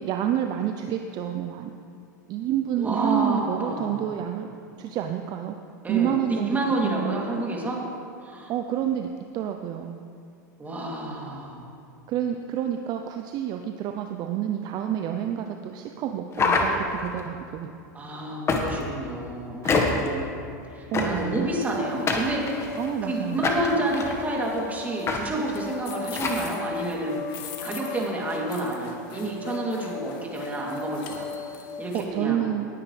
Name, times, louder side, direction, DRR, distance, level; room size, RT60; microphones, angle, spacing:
voice 1, 0.0-1.7 2.3-4.5 4.8-5.6 5.9-6.6 6.8-7.2 8.5-10.0 12.1-17.7 19.6-19.9 20.9-21.5 22.8-23.5 31.9-32.7, right 10 dB, 45° right, 5 dB, 0.6 m, -29 dB
voice 2, 2.8-4.1 5.8-7.8 8.2-8.5 10.6-11.6 17.9-20.3 20.7-22.7 23.0-31.3 31.8-32.4, right 2 dB, 15° right, -3 dB, 2.9 m, -29 dB
sound 1, 16.3-17.2 18.5-19.0 19.6-20.1 20.9-21.4 22.1-22.9 23.4-24.2 25.1-25.2 25.5-25.6 26.1-26.4, left 3 dB, 25° left, 1.5 m, -25 dB
sound 2, 21.6-32.0, left 5 dB, 50° left, 1.5 m, -38 dB
18.5 x 9.6 x 3.3 m, 2.5 s
hypercardioid pair, 100°, 10 cm